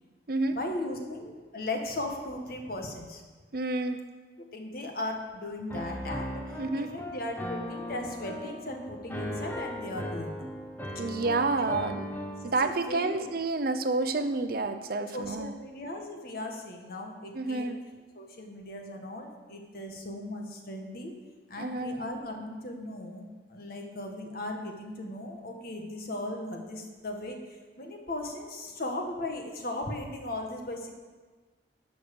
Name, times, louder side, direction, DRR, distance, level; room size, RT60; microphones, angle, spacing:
voice 1, 0.5-3.2 4.5-10.5 12.4-13.3 15.1-17.7 18.1-21.1 21.5-30.9, left 1 dB, 55° left, 3 dB, 1.6 m, -37 dB
voice 2, 3.5-4.0 6.6-6.9 11.0-12.1 12.4-15.5 17.3-17.8 21.6-22.0, right 3 dB, 55° right, 9 dB, 0.7 m, -29 dB
Piano, 5.7-12.5, left 1 dB, 10° left, 1.1 m, -37 dB
11.5 x 6.1 x 7.0 m, 1.4 s
head